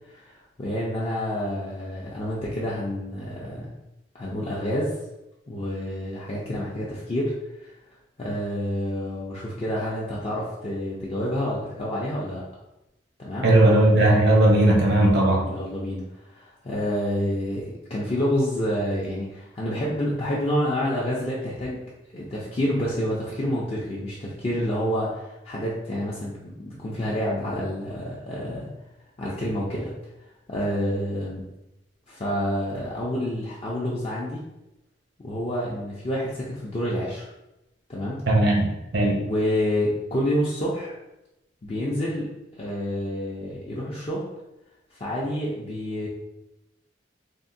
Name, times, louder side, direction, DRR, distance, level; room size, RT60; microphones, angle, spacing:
voice 1, 0.6-3.7 4.1-4.9 5.5-7.3 7.6-7.7 8.2-12.4 13.2-13.5 15.4-16.0 16.3-21.8 22.1-28.7 29.2-29.9 30.5-31.4 32.1-34.4 35.2-37.3 37.9-38.2 39.2-40.9 41.6-42.3 42.6-44.2 44.9-46.1, equal, 35° left, -6 dB, 0.4 m, -28 dB
voice 2, 13.4-15.4 38.3-39.2, right 1 dB, 75° right, -2 dB, 0.8 m, -18 dB
3.4 x 2.1 x 2.6 m, 0.92 s
head